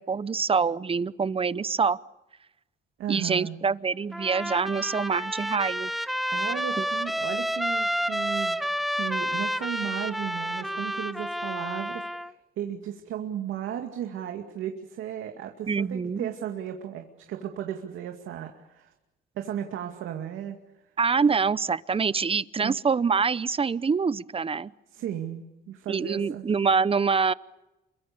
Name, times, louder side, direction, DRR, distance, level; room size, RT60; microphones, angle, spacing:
voice 1, 0.0-2.0 3.1-5.9 6.8-6.9 15.7-16.3 21.0-24.7 25.9-27.3, right 5 dB, 30° right, 18 dB, 0.8 m, -25 dB
voice 2, 3.0-3.6 6.3-8.6 8.9-18.9 19.4-20.6 22.6-22.7 24.9-26.4, right 10 dB, 85° right, 4 dB, 2.3 m, -35 dB
Trumpet, 4.1-12.3, equal, ahead, 1.1 m, -30 dB
28.0 x 24.0 x 6.9 m, 1.0 s
cardioid pair, 90°, 20 cm